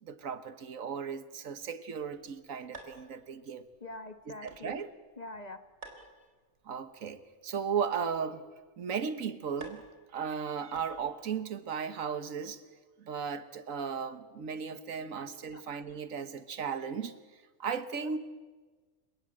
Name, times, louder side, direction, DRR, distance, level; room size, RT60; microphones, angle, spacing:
voice 1, 0.0-3.6 4.4-4.9 6.6-8.4 8.8-9.8 10.1-12.6 13.0-17.2 17.6-18.2, right 6 dB, 85° right, 12 dB, 1.6 m, -36 dB
sound 1, 2.7-11.3, right 3 dB, 55° right, 4.0 m, -55 dB
voice 2, 3.8-4.7 5.2-5.6 6.0-6.1 15.1-15.6 18.0-18.1, left 2 dB, 35° left, 9 dB, 1.2 m, -45 dB
29.0 x 17.0 x 8.8 m, 1.4 s
omnidirectional pair, 1.4 m